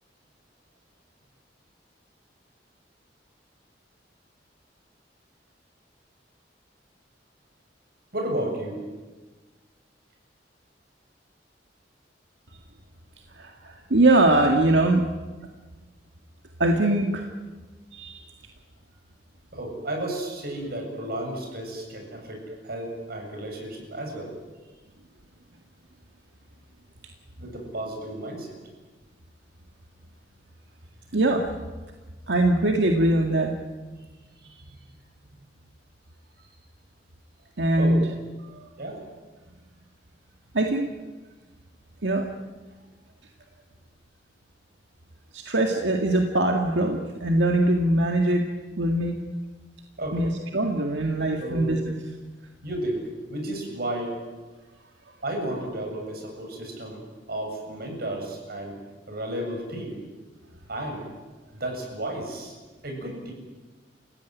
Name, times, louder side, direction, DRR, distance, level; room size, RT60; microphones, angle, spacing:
voice 1, 8.1-8.8 19.5-24.3 27.4-28.5 37.8-38.0 38.8-39.0 50.0-50.2 51.4-51.8 52.6-53.0 53.3-54.1 55.2-58.8 59.1-60.0 60.7-61.1 61.6-62.5 62.8-63.3, right 1 dB, 60° right, 2 dB, 7.7 m, -32 dB
voice 2, 13.3-15.1 16.6-17.2 17.9-18.3 31.1-31.5 32.3-33.5 37.6-38.1 38.4-38.7 40.5-40.9 42.0-42.3 45.3-48.5 48.8-49.2 50.1-51.9, right 1 dB, 90° right, 2 dB, 1.9 m, -22 dB
29.5 x 17.0 x 9.3 m, 1.3 s
head